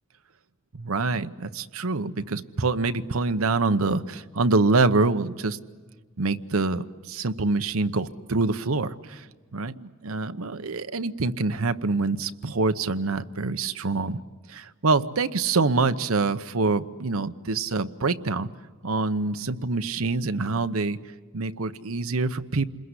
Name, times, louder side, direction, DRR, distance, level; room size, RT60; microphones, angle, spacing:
voice 1, 0.7-5.6 6.2-9.3 9.5-14.2 14.5-18.5 18.8-21.0 21.3-22.7, right 3 dB, 75° right, 11 dB, 0.9 m, -25 dB
28.0 x 21.5 x 9.8 m, 1.4 s
head